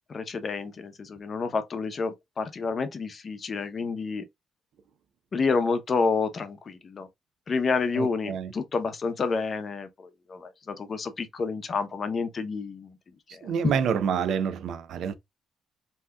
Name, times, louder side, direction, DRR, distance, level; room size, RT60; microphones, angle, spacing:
voice 1, 0.1-4.2 5.3-7.1 7.5-13.0 13.3-13.5, left 4 dB, 40° left, 0.7 m, -29 dB
voice 2, 8.0-8.5 13.4-15.1, right 7 dB, 70° right, 0.4 m, -27 dB
3.4 x 2.7 x 2.2 m
cardioid pair, 90°, 0 cm